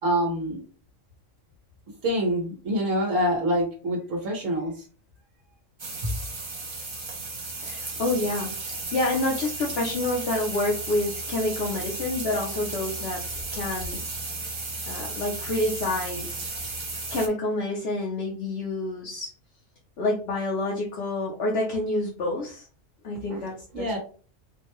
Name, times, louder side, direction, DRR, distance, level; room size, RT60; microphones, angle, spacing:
voice 1, 0.0-0.6 2.0-4.8 6.0-6.1 23.3-23.4 23.7-24.0, equal, 85° right, -3 dB, 1.4 m, -26 dB
sound 1, 5.8-17.3, right 3 dB, 35° right, 0.5 m, -34 dB
voice 2, 7.6-14.0 14.9-16.3 17.1-19.3 20.0-22.7 23.0-24.0, left 2 dB, 60° left, -2 dB, 0.9 m, -28 dB
4.4 x 2.2 x 3.0 m, 0.40 s
omnidirectional pair, 1.3 m